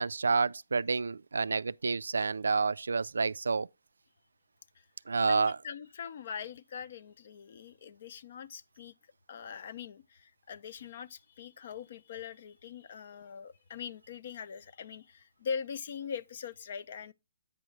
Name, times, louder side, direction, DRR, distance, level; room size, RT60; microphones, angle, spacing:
voice 1, 0.0-3.7 5.1-5.6, right 4 dB, 85° right, 0.3 m, -29 dB
voice 2, 5.2-8.9 9.3-17.1, left 7 dB, 55° left, 0.6 m, -42 dB
8.8 x 6.2 x 3.2 m
hypercardioid pair, 145°, 0 cm